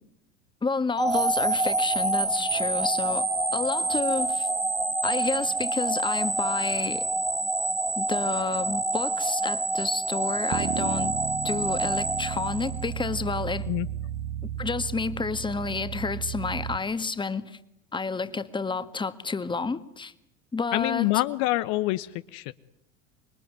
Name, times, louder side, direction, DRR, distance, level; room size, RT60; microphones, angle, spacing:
voice 1, 0.6-4.5 5.0-7.0 8.0-11.2 11.4-13.7 14.6-17.6 17.9-20.1 20.5-21.1, left 4 dB, 15° left, 1.7 m, -30 dB
sound 1, 1.0-13.1, right 2 dB, 10° right, 1.7 m, -27 dB
sound 2, 10.5-16.8, right 10 dB, 50° right, 1.7 m, -34 dB
voice 2, 20.7-22.5, left 19 dB, 50° left, 1.1 m, -26 dB
26.5 x 22.5 x 9.6 m
figure-of-eight pair, 80°, 37 cm